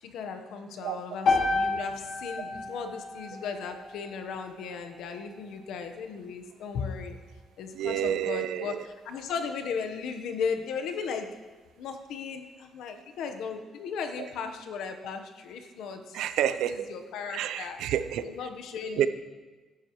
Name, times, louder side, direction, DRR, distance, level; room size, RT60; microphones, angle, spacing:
voice 1, 0.0-7.2 7.6-11.3 11.8-16.2 16.5-17.8 18.2-19.1, left 5 dB, 75° left, 6 dB, 1.1 m, -36 dB
sound 1, 1.3-5.4, left 3 dB, 50° left, 2.6 m, -31 dB
voice 2, 7.7-8.8 16.1-16.9 17.3-18.3 19.0-19.1, right 10 dB, 90° right, 12 dB, 0.5 m, -29 dB
14.5 x 11.0 x 3.1 m, 1.3 s
cardioid pair, 170°, 0 cm